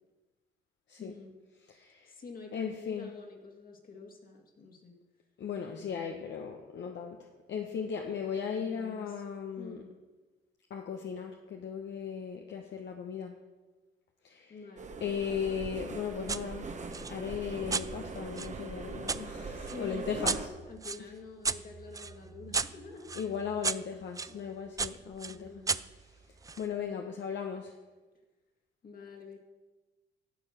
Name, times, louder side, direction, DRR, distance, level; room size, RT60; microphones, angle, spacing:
voice 1, 1.0-1.4 2.1-5.0 5.7-6.1 8.5-9.2 9.6-9.9 14.5-15.3 19.5-23.2 24.3-24.8 25.3-25.8 26.8-27.2 28.8-29.4, left 3 dB, 45° left, 1 dB, 2.0 m, -48 dB
voice 2, 1.7-2.1 2.5-3.1 5.4-9.8 10.7-13.4 14.2-14.5 15.0-16.7 17.1-20.4 23.1-25.6 26.6-27.7, left 7 dB, 65° left, 2 dB, 1.0 m, -37 dB
sound 1, 14.8-20.5, right 4 dB, 35° right, 1.2 m, -41 dB
sound 2, 16.3-16.4 16.9-19.2 19.7-24.3 24.8-26.7, right 4 dB, 15° right, 0.3 m, -35 dB
11.5 x 6.9 x 5.9 m, 1.2 s
cardioid pair, 90°, 20 cm